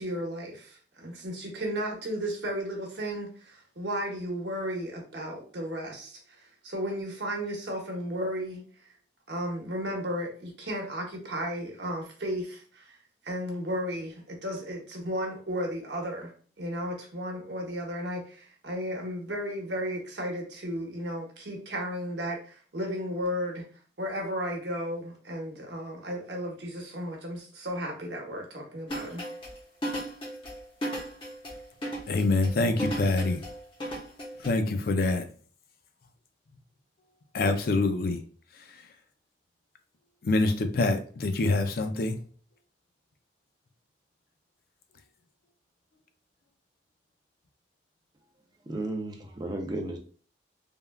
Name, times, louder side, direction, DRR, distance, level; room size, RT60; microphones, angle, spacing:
voice 1, 0.0-8.6 9.3-13.0 13.2-23.6 24.0-29.2, equal, 70° right, 0.9 m, -34 dB
sound 1, 28.9-34.5, right 1 dB, 30° left, 0.8 m, -35 dB
voice 2, 32.1-33.4 34.4-35.3 37.3-38.2 40.2-42.2, left 2 dB, 55° left, 0.4 m, -25 dB
voice 3, 48.7-50.0, right 2 dB, 25° right, 0.4 m, -33 dB
3.4 x 2.3 x 2.2 m
head